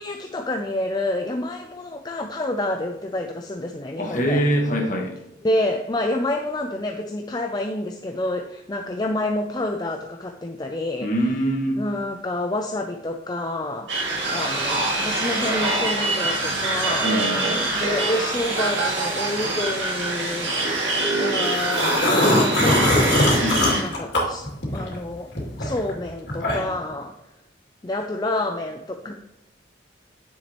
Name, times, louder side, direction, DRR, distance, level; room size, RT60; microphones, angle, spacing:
voice 1, 0.0-4.4 5.4-11.1 11.8-17.2 17.7-20.6 21.2-23.2 23.8-25.3 25.6-27.1 27.8-29.1, left 1 dB, 20° left, 4 dB, 0.4 m, -28 dB
voice 2, 4.0-5.1 11.0-11.8 17.0-17.7 23.4-23.8, equal, 40° left, 1 dB, 1.5 m, -24 dB
sound 1, 13.9-23.8, right 2 dB, 85° right, 2.1 m, -24 dB
sound 2, 21.4-25.0 25.3-26.8, left 1 dB, 65° left, 2.6 m, -21 dB
9.6 x 7.1 x 3.0 m, 0.90 s
head